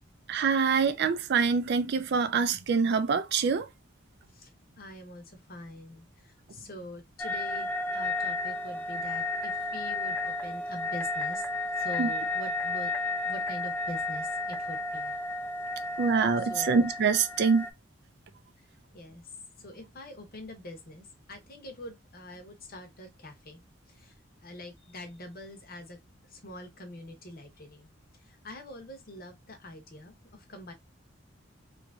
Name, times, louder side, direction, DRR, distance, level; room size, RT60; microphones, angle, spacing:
voice 1, 0.3-3.7 12.0-12.1 16.0-17.7, right 5 dB, 55° right, 0.4 m, -25 dB
voice 2, 4.8-7.7 7.9-11.4 11.8-12.9 13.2-15.1 16.4-16.7 18.6-18.7 18.9-19.2 19.6-23.6 23.9-24.2 24.4-26.0 26.3-27.9 28.2-30.7, left 1 dB, 45° left, 1.0 m, -44 dB
sound 1, 7.2-17.7, left 2 dB, 10° left, 0.4 m, -32 dB
3.0 x 2.6 x 3.5 m
head